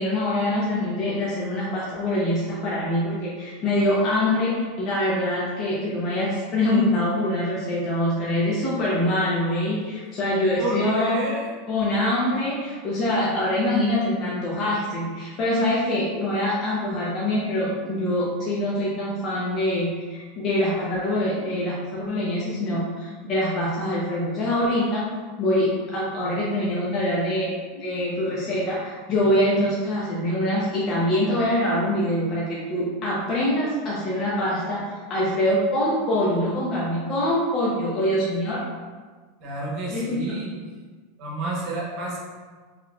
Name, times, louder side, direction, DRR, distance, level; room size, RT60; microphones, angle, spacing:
voice 1, 0.0-11.1 11.7-25.0 25.4-34.8 35.1-38.6 39.9-40.3, left 1 dB, 40° left, -6 dB, 0.7 m, -24 dB
voice 2, 10.4-11.5 39.4-40.5 41.2-42.2, right 2 dB, 50° right, -3 dB, 0.9 m, -30 dB
3.7 x 3.1 x 2.3 m, 1.5 s
supercardioid pair, 125°, 0 cm